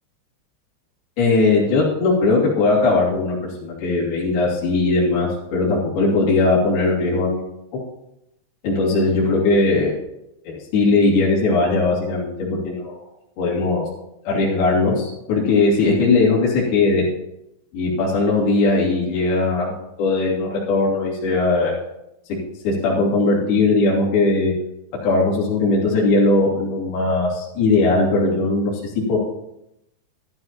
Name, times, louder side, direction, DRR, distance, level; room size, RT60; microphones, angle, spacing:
voice 1, 1.2-7.5 8.6-9.9 10.4-13.0 13.4-13.8 14.2-17.1 17.7-19.7 20.0-21.7 22.6-24.5 25.0-28.7 29.1-29.2, left 3 dB, 55° left, -6 dB, 4.3 m, -19 dB
13.5 x 12.5 x 2.9 m, 0.85 s
omnidirectional pair, 5.7 m